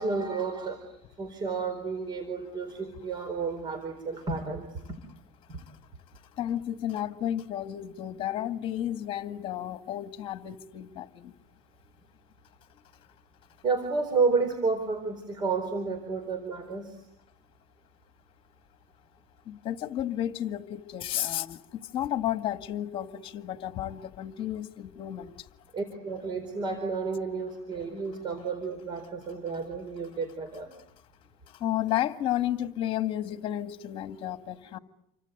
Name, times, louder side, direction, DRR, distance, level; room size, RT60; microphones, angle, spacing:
voice 1, 0.0-4.7 5.5-5.6 13.6-17.0 25.7-30.7, right 4 dB, 35° right, 4.4 m, -31 dB
voice 2, 6.3-11.3 19.5-25.5 31.5-34.8, left 12 dB, 40° left, 2.0 m, -32 dB
29.5 x 25.0 x 8.1 m
supercardioid pair, 130°, 14 cm